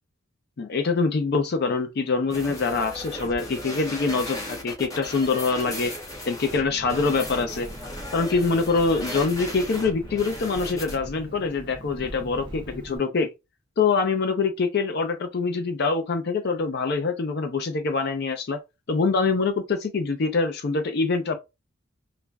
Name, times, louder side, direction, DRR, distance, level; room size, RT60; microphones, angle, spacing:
voice 1, 0.6-5.9 6.2-7.7 8.1-13.3 13.8-18.6 18.9-21.4, left 4 dB, 50° left, 0.4 m, -24 dB
sound 1, 2.3-11.0, left 1 dB, 15° left, 0.9 m, -36 dB
Engine, 6.5-13.0, right 1 dB, 20° right, 0.6 m, -41 dB
2.4 x 2.1 x 3.3 m
head